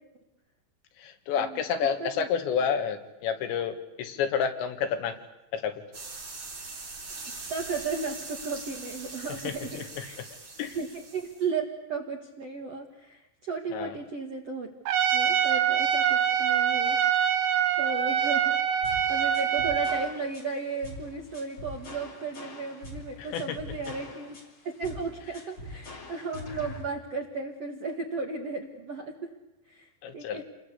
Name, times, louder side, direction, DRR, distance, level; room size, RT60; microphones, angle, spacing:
voice 1, 1.0-5.2 5.5-5.8 9.3-10.3 10.6-10.8 13.7-14.0 23.2-23.6 30.0-30.4, left 7 dB, 75° left, 7 dB, 3.7 m, -30 dB
sound 1, 5.9-11.5, right 3 dB, 30° right, 4.9 m, -42 dB
voice 2, 7.5-10.2 10.7-14.7 15.1-17.0 17.8-18.6 18.9-24.4 24.6-29.3 29.7-30.4, right 4 dB, 60° right, 2 dB, 1.7 m, -35 dB
Trumpet, 14.9-20.1, right 9 dB, 75° right, 3.5 m, -25 dB
sound 2, 18.8-26.8, left 1 dB, 30° left, 3.0 m, -43 dB
28.5 x 21.0 x 8.3 m, 0.96 s
omnidirectional pair, 5.4 m